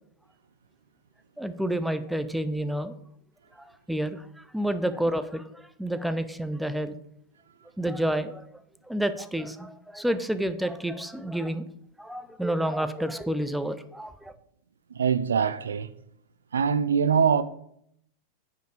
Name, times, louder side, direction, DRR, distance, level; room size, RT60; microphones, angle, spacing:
voice 1, 1.4-2.9 3.6-7.0 7.8-11.6 12.0-14.3, right 1 dB, ahead, 0.5 m, -30 dB
voice 2, 14.9-15.9 16.5-17.4, right 7 dB, 70° right, 0.4 m, -23 dB
9.0 x 4.9 x 5.0 m
figure-of-eight pair, 90°, 0 cm